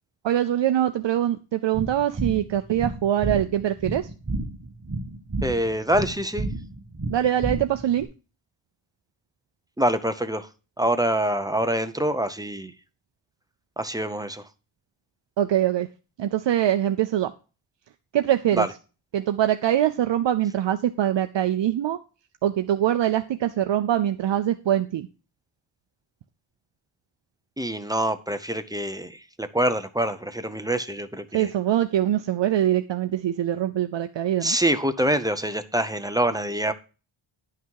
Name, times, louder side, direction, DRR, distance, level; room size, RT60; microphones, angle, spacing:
voice 1, 0.2-4.1 7.1-8.1 15.4-15.9 16.2-17.3 18.1-18.7 19.1-22.0 22.4-25.1 31.3-34.6, right 11 dB, 60° right, 0.6 m, -23 dB
sound 1, 1.7-8.0, right 2 dB, 30° right, 1.6 m, -31 dB
voice 2, 5.4-6.5 9.8-10.5 10.8-12.7 13.8-14.4 18.5-18.7 27.6-31.5 34.4-36.7, right 1 dB, 10° right, 0.5 m, -25 dB
10.5 x 5.8 x 4.6 m
wide cardioid pair, 175°, 49 cm